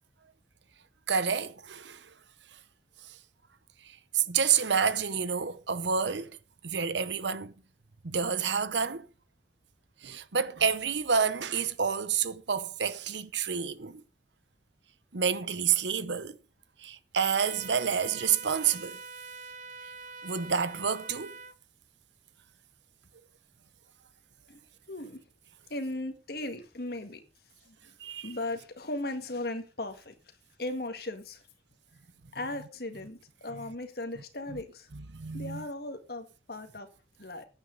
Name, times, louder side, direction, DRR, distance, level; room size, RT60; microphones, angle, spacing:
voice 1, 1.1-2.1 3.1-3.2 3.8-6.4 6.6-7.5 8.0-9.1 10.0-14.0 15.1-16.4 16.8-19.0 20.2-21.4 28.0-28.3 34.9-35.6, right 6 dB, 75° right, 0.9 m, -29 dB
sound 1, 17.4-21.5, right 3 dB, 40° right, 1.0 m, -45 dB
voice 2, 24.9-25.2 25.7-27.2 27.7-30.1 30.6-31.4 32.3-34.9 35.3-36.9 37.2-37.5, left 2 dB, 55° left, 1.9 m, -37 dB
14.5 x 9.3 x 3.9 m
head